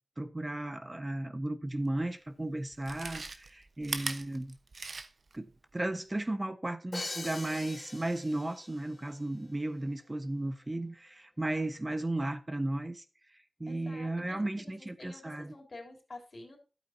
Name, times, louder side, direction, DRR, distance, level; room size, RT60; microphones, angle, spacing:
voice 1, 0.2-4.6 5.3-5.5 5.7-13.0 13.6-15.5, right 1 dB, 30° right, 1.2 m, -35 dB
Chewing mastication, 1.9-2.0 2.7-5.4 5.7-5.8, right 3 dB, 70° right, 1.0 m, -39 dB
Crash cymbal, 6.9-8.8, left 2 dB, 45° left, 1.5 m, -41 dB
voice 2, 13.7-14.7 15.0-16.6, left 2 dB, 65° left, 3.3 m, -49 dB
12.0 x 8.6 x 2.8 m
cardioid pair, 45°, 0 cm